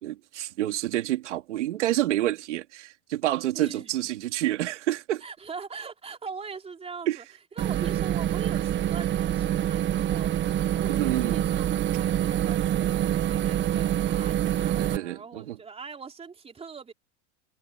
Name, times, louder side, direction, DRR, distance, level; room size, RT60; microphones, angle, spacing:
voice 1, 0.0-5.2 7.1-7.2 10.9-11.4 14.8-15.6, right 14 dB, 85° right, 3.1 m, -28 dB
voice 2, 3.5-4.1 5.2-7.2 7.6-16.9, right 5 dB, 15° right, 4.0 m, -42 dB
sound 1, 7.6-15.0, right 11 dB, 30° right, 1.7 m, -26 dB
supercardioid pair, 125°, 34 cm